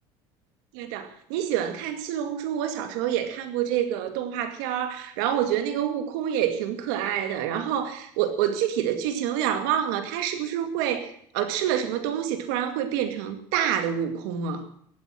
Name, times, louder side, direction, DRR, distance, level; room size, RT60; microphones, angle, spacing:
voice 1, 0.7-14.6, right 10 dB, 90° right, 8 dB, 2.3 m, -27 dB
16.5 x 9.2 x 7.7 m, 0.64 s
cardioid pair, 150°, 10 cm